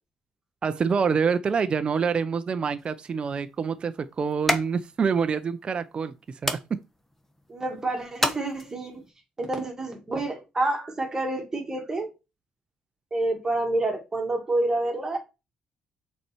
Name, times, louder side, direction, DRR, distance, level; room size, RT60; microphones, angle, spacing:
voice 1, 0.6-6.1 6.4-6.6, right 6 dB, 35° right, 0.5 m, -26 dB
Sticks Hitting sticks, 2.8-9.1, left 1 dB, 10° left, 1.0 m, -34 dB
voice 2, 7.5-9.0 9.4-12.1 13.1-15.2, right 2 dB, 20° right, 2.2 m, -28 dB
6.4 x 4.3 x 4.5 m
cardioid pair, 110°, 3 cm